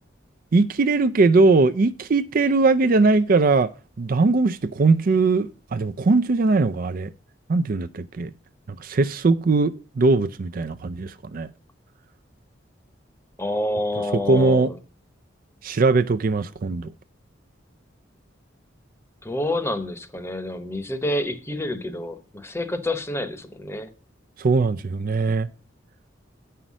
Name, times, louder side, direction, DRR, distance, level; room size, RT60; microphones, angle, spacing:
voice 1, 0.5-3.7 4.0-7.1 7.5-8.3 8.8-11.5 14.3-14.7 15.6-16.9 24.4-25.5, right 3 dB, 50° right, 0.4 m, -20 dB
voice 2, 13.4-14.8 19.2-23.9, left 1 dB, 15° left, 0.9 m, -28 dB
9.0 x 5.6 x 6.1 m
head